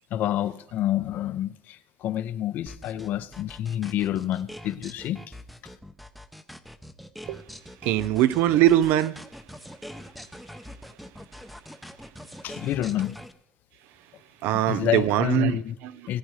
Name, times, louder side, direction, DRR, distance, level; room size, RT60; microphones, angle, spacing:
voice 1, 0.1-5.4 5.6-5.7 12.4-13.2 14.7-15.7 16.1-16.2, left 12 dB, 60° left, 0.6 m, -28 dB
sound 1, 2.7-13.3, equal, ahead, 0.6 m, -43 dB
voice 2, 7.8-9.2 14.4-15.6 15.8-16.1, right 13 dB, 80° right, 0.5 m, -22 dB
18.5 x 9.0 x 3.2 m
cardioid pair, 140°, 4 cm